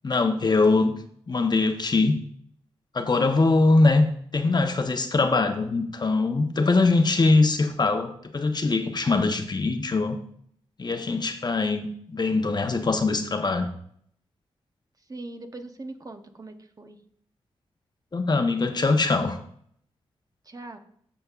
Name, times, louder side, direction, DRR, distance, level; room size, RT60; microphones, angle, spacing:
voice 1, 0.0-0.9 1.3-2.2 2.9-4.1 4.3-10.2 10.8-13.7 18.1-19.4, left 3 dB, 40° left, 6 dB, 1.0 m, -22 dB
voice 2, 15.1-17.0 20.4-20.8, right 2 dB, 35° right, 6 dB, 0.9 m, -40 dB
13.5 x 5.2 x 2.4 m, 0.65 s
cardioid pair, 55°, 11 cm